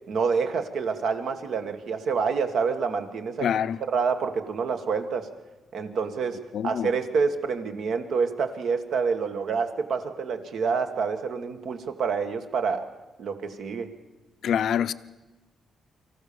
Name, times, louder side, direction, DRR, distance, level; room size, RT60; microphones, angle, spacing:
voice 1, 0.1-3.5 3.9-5.3 5.7-12.9 13.2-13.9, right 5 dB, 65° right, 1.9 m, -27 dB
voice 2, 3.4-3.8 6.5-6.9 14.4-14.9, left 9 dB, 65° left, 0.6 m, -25 dB
25.0 x 15.0 x 7.0 m
cardioid pair, 130°, 0 cm